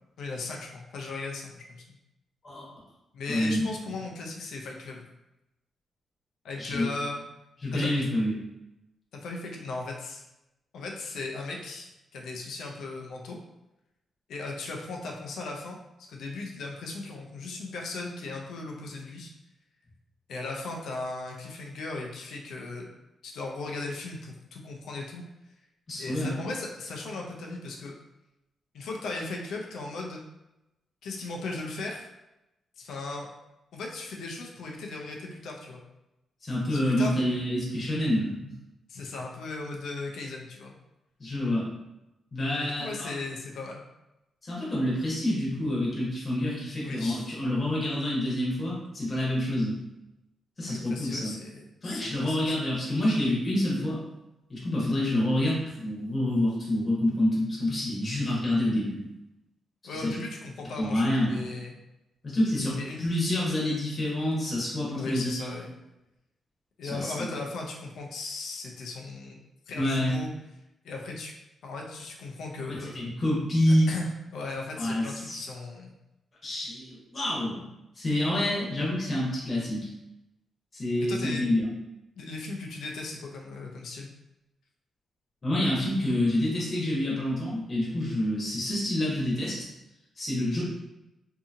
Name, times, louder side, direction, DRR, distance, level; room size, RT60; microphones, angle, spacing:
voice 1, 0.2-2.0 3.1-5.1 6.4-7.2 7.7-8.0 9.1-10.2 10.7-13.4 14.3-15.8 16.1-19.3 20.3-22.9 23.2-25.2 26.0-27.9 28.7-30.2 31.0-32.1 32.8-33.3 33.7-35.8 36.7-37.1 38.9-40.7 42.6-43.8 46.8-47.3 50.7-52.6 59.8-61.7 62.8-63.0 64.9-65.7 66.8-69.4 69.7-70.3 70.8-71.3 71.6-73.0 73.9-75.9 81.1-81.5 82.2-84.1, left 3 dB, 80° left, 0 dB, 0.5 m, -37 dB
voice 2, 3.3-3.9 6.6-6.9 7.6-8.3 25.9-26.3 36.4-38.5 41.2-41.6 42.3-43.1 44.4-49.8 50.6-51.3 51.8-54.0 54.5-59.0 59.9-60.2 60.8-61.4 62.2-65.3 66.8-67.3 69.7-70.1 72.9-73.9 74.8-75.4 76.4-77.7 78.0-79.9 80.7-81.7 85.4-89.7 90.2-90.6, left 1 dB, 30° left, -6 dB, 0.9 m, -27 dB
2.7 x 2.7 x 2.4 m, 0.94 s
cardioid pair, 125°, 0 cm